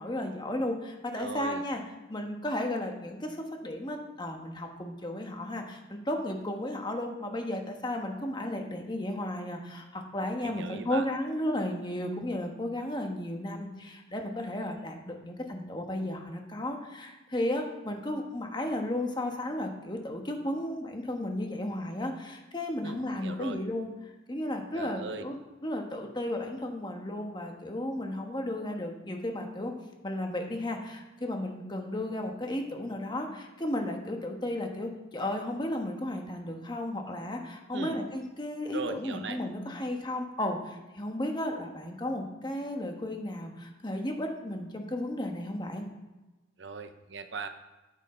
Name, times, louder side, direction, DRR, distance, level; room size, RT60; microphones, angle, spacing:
voice 1, 0.0-1.8 2.1-3.4 3.6-23.9 24.3-29.7 30.0-45.9, left 1 dB, 25° left, 3 dB, 1.3 m, -34 dB
voice 2, 1.2-1.6 10.4-11.1 22.8-23.6 24.7-25.2 37.7-38.1 38.7-39.4 46.6-47.5, right 4 dB, 80° right, 9 dB, 0.8 m, -39 dB
9.2 x 8.3 x 4.4 m, 1.1 s
head